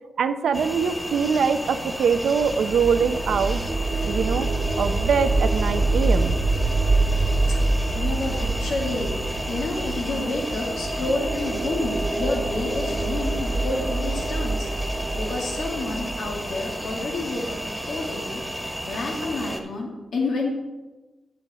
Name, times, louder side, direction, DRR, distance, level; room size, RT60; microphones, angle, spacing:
voice 1, 0.2-3.6 4.0-4.5 4.8-6.4, right 6 dB, 85° right, 9 dB, 0.5 m, -23 dB
sound 1, 0.5-19.6, equal, 5° left, 1.5 m, -33 dB
sound 2, 2.2-17.0, right 2 dB, 55° right, 1.2 m, -26 dB
voice 2, 7.9-9.2 9.5-14.7 15.1-17.6 17.9-18.4 18.8-20.5, left 2 dB, 85° left, -1 dB, 2.0 m, -29 dB
9.9 x 7.6 x 4.1 m, 1.1 s
cardioid pair, 70°, 0 cm